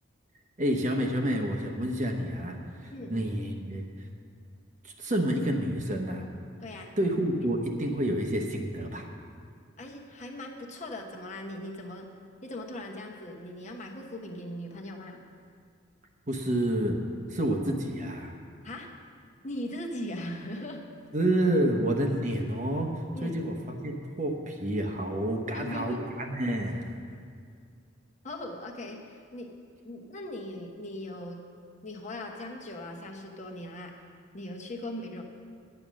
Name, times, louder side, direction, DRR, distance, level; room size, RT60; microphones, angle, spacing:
voice 1, 0.6-3.8 4.8-6.2 7.0-9.0 16.3-17.0 17.3-18.3 21.1-22.9 23.2-26.9, right 1 dB, 35° right, 2 dB, 1.0 m, -29 dB
voice 2, 2.9-3.3 6.6-6.9 9.8-12.1 12.4-15.2 18.6-18.9 19.4-20.8 23.1-23.4 25.5-26.0 28.2-29.5 29.8-31.5 31.8-33.9 34.3-35.2, left 1 dB, 35° left, 1 dB, 1.0 m, -39 dB
10.5 x 8.8 x 6.2 m, 2.2 s
head